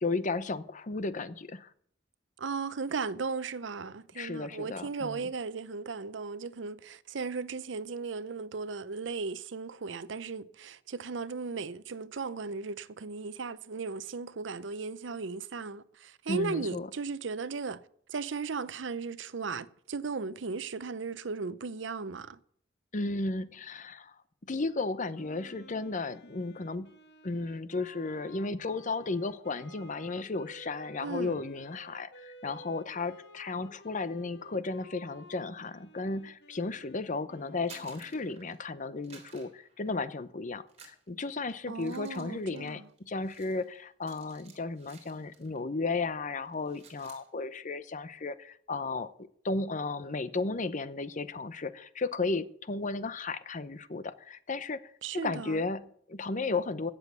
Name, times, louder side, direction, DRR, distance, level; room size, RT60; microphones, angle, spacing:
voice 1, 0.0-1.7 4.1-5.3 16.3-16.9 22.9-24.1 24.5-26.9 27.2-49.1 49.4-54.8 55.1-56.9, left 3 dB, 40° left, 0.7 m, -34 dB
voice 2, 2.4-17.8 18.1-22.4 31.0-31.3 41.7-42.8 55.0-55.6, right 4 dB, 75° right, 0.7 m, -36 dB
Wind instrument woodwind instrument, 25.1-38.5, equal, 65° left, 1.3 m, -54 dB
sound 1, 37.5-38.7 39.0-40.3 40.7-45.6 45.9-46.1 46.4-47.3, right 5 dB, 35° right, 3.4 m, -55 dB
16.5 x 7.1 x 7.0 m
head